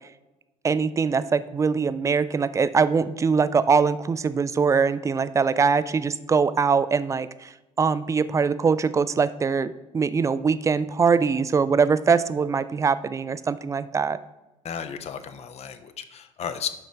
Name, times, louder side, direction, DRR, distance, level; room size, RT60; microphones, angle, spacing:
voice 1, 0.6-7.5 7.8-14.2, right 5 dB, 15° right, 14 dB, 0.4 m, -22 dB
voice 2, 14.6-16.7, left 8 dB, 35° left, 10 dB, 0.7 m, -34 dB
12.0 x 5.0 x 3.4 m, 1.0 s
figure-of-eight pair, 60°, 18 cm